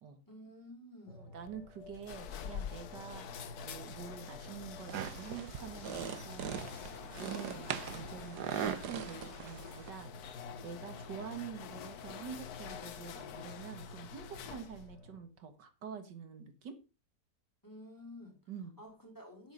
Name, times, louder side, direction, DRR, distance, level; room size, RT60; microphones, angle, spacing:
voice 1, 0.3-1.3 17.6-18.4 18.8-19.5, left 1 dB, 10° left, 3.7 m, -51 dB
sound 1, 1.1-15.2, left 1 dB, 90° left, 4.1 m, -53 dB
voice 2, 1.1-6.7 7.2-10.1 10.6-16.8 18.5-18.8, right 7 dB, 90° right, 2.3 m, -47 dB
sound 2, 1.5-15.0, left 8 dB, 65° left, 1.4 m, -47 dB
sound 3, 4.9-9.9, right 8 dB, 70° right, 1.5 m, -40 dB
9.3 x 8.8 x 5.2 m
omnidirectional pair, 1.8 m